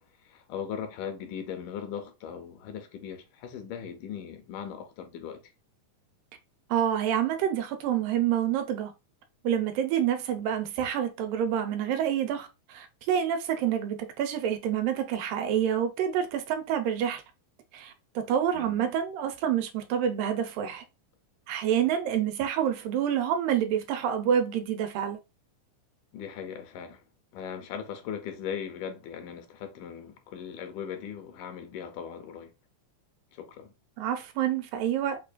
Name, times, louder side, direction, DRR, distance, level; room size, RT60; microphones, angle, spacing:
voice 1, 0.2-5.4 18.5-18.8 21.8-21.9 26.1-27.1 27.3-32.5 33.3-33.7, left 8 dB, 80° left, 2.1 m, -39 dB
voice 2, 6.7-8.9 9.4-17.2 17.7-20.8 21.5-25.2 34.0-35.2, right 9 dB, 85° right, 2.3 m, -28 dB
5.4 x 2.5 x 2.2 m
omnidirectional pair, 3.9 m